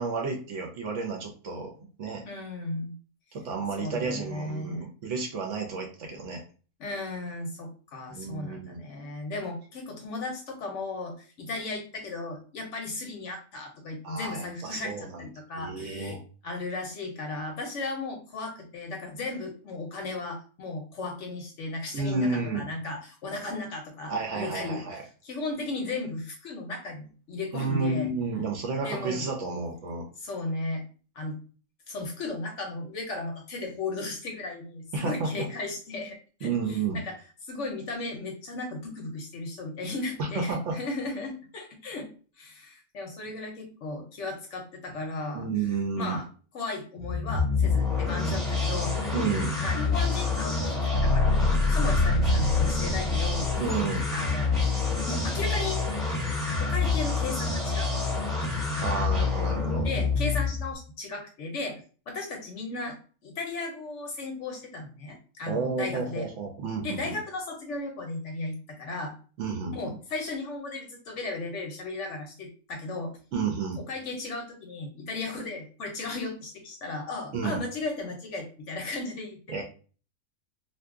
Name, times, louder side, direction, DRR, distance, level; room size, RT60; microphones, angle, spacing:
voice 1, 0.0-1.7 2.0-2.2 3.3-6.4 8.1-8.8 14.0-15.2 15.6-16.2 21.9-22.6 24.1-25.0 27.5-30.0 34.9-35.3 36.4-37.0 40.2-40.8 45.3-46.2 49.1-49.6 53.6-54.0 58.8-59.9 65.5-67.1 69.4-69.8 73.3-73.8 77.3-77.6 79.5-79.6, right 4 dB, 60° right, 1 dB, 0.9 m, -31 dB
voice 2, 2.3-2.9 3.7-4.9 6.8-16.2 16.4-24.8 25.2-28.1 28.8-29.3 30.2-30.8 31.2-31.4 31.9-37.2 37.4-42.1 42.4-45.7 45.9-46.3 46.5-48.9 49.6-53.6 54.1-54.7 55.0-55.8 56.6-58.3 59.8-63.0 63.2-66.3 66.8-69.2 69.7-73.1 73.8-79.6, left 2 dB, 65° left, 2 dB, 0.9 m, -35 dB
sound 1, 47.0-60.7, left 4 dB, ahead, 0.9 m, -27 dB
sound 2, 49.7-53.8, left 3 dB, 90° left, 1.1 m, -26 dB
2.7 x 2.2 x 3.5 m, 0.38 s
omnidirectional pair, 1.6 m